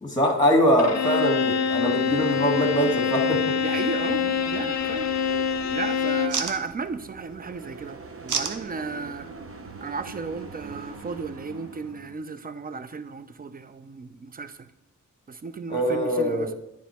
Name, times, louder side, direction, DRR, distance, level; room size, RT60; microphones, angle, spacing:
voice 1, 0.0-3.5 15.7-16.5, equal, 10° left, 1.5 m, -23 dB
Bowed string instrument, 0.8-6.5, left 6 dB, 60° left, 0.5 m, -25 dB
sound 1, 1.1-12.1, right 3 dB, 45° right, 0.8 m, -42 dB
voice 2, 3.6-5.1 5.7-8.0 8.2-9.3 9.8-14.7 15.3-16.5, right 4 dB, 30° right, 0.4 m, -34 dB
sound 2, 4.0-11.4, right 6 dB, 70° right, 0.7 m, -38 dB
9.2 x 3.1 x 4.2 m
cardioid pair, 65°, 31 cm